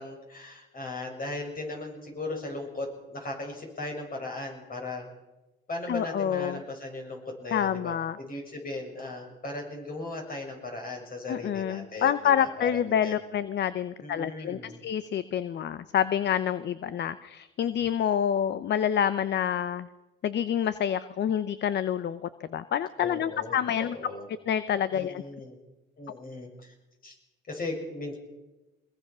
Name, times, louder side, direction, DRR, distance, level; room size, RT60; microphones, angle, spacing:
voice 1, 0.0-5.1 5.7-13.2 14.0-14.8 23.0-24.3 24.9-25.6 26.0-26.7 27.0-27.1 27.5-28.2, left 2 dB, 45° left, 2 dB, 6.9 m, -37 dB
voice 2, 5.9-6.6 7.5-8.2 11.3-19.9 20.2-24.0 24.5-25.2, left 9 dB, 60° left, 14 dB, 0.8 m, -28 dB
22.0 x 21.0 x 6.2 m, 1.1 s
cardioid pair, 90°, 20 cm